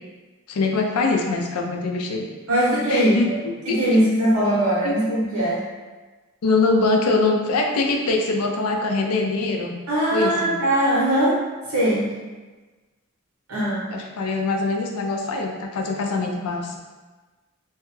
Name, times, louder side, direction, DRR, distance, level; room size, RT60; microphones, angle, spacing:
voice 1, 0.5-2.3 2.9-3.3 3.7-3.8 4.8-4.9 6.4-9.8 10.1-10.6 13.9-16.8, left 3 dB, 90° left, 2 dB, 0.4 m, -23 dB
voice 2, 2.5-3.3 3.7-5.6 9.9-11.4 11.7-12.1 13.5-13.9, right 1 dB, 80° right, -8 dB, 1.2 m, -20 dB
2.6 x 2.3 x 3.1 m, 1.3 s
head